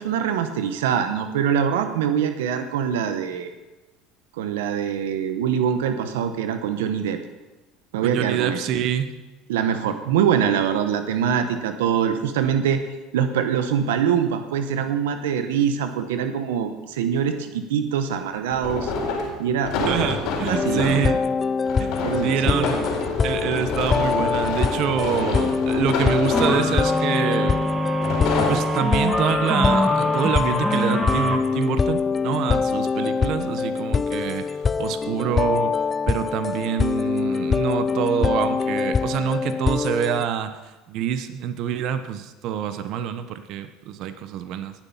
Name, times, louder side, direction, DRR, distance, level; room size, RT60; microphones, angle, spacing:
voice 1, 0.0-3.5 4.4-7.2 7.9-8.6 9.5-12.8 13.1-18.9 19.4-20.1 20.5-21.1 22.0-22.7, right 8 dB, 85° right, 8 dB, 1.0 m, -24 dB
voice 2, 8.0-9.1 19.9-21.2 21.6-22.9 23.2-27.7 28.5-34.4 34.8-35.8 36.1-40.6 40.9-44.7, right 9 dB, 60° right, 10 dB, 1.0 m, -26 dB
sound 1, 15.8-15.9 18.5-21.1 21.7-26.9 27.7-28.5, left 4 dB, 65° left, 4.1 m, -27 dB
sound 2, 20.5-40.3, left 5 dB, 25° left, 0.4 m, -24 dB
sound 3, 26.3-31.4, equal, 5° left, 2.6 m, -24 dB
18.5 x 7.5 x 5.6 m, 1.1 s
supercardioid pair, 90°, 0 cm